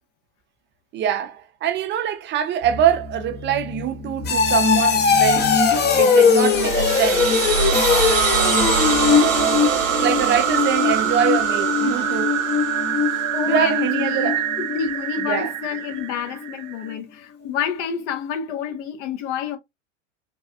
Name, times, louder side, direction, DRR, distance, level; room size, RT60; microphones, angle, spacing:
voice 1, 0.9-5.5 6.0-7.9 10.0-12.4 13.5-14.5 15.2-15.5, right 9 dB, 30° right, 0.4 m, -24 dB
sound 1, 2.6-15.3 15.6-16.0 16.4-16.5, left 6 dB, 25° left, 0.7 m, -21 dB
sound 2, 6.3-16.9, right 10 dB, 85° right, 0.5 m, -24 dB
voice 2, 13.3-14.3 14.6-19.6, left 7 dB, 65° left, 1.0 m, -28 dB
3.3 x 2.3 x 2.6 m
hypercardioid pair, 95°, 38 cm